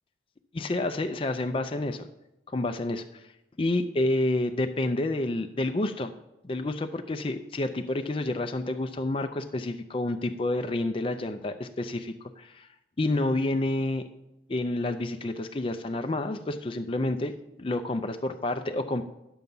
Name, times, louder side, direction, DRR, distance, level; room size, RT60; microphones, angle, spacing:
voice 1, 0.5-2.1 2.5-3.0 3.6-6.1 6.4-12.7 13.0-14.0 14.5-17.3 17.6-19.0, left 2 dB, 30° left, 7 dB, 0.5 m, -29 dB
10.5 x 6.9 x 5.4 m, 0.90 s
head